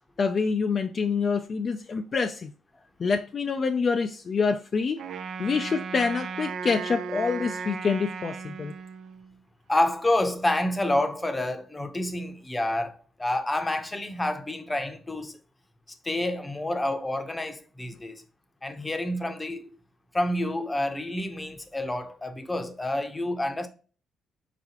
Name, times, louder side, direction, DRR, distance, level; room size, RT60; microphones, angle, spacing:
voice 1, 0.2-2.5 3.0-5.0 5.4-8.7, left 5 dB, 45° left, 0.4 m, -26 dB
Wind instrument woodwind instrument, 5.0-9.4, right 6 dB, 70° right, 0.5 m, -36 dB
voice 2, 9.7-15.4 16.0-18.2 18.6-19.8 20.1-23.7, left 1 dB, 15° left, 0.7 m, -28 dB
4.5 x 4.0 x 2.9 m
cardioid pair, 90°, 0 cm